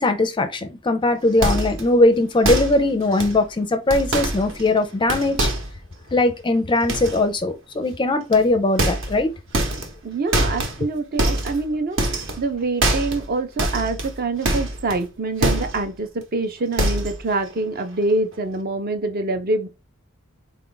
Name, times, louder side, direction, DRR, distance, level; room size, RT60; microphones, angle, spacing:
voice 1, 0.0-5.5 6.1-9.3, left 2 dB, 20° left, 0.4 m, -20 dB
sound 1, 1.4-1.9 2.4-2.8 3.1-3.4 3.9-5.8 6.9-7.2 8.3-8.5 8.8-9.3 9.5-10.0 10.3-10.8 11.2-11.7 12.0-12.5 12.8-13.3 13.6-15.0 15.4-15.9 16.2-16.3 16.7-17.2 17.5-17.8 18.1-18.2, right 1 dB, 60° right, 0.9 m, -24 dB
voice 2, 10.0-19.7, right 2 dB, 45° right, 0.5 m, -25 dB
3.8 x 2.4 x 3.8 m
head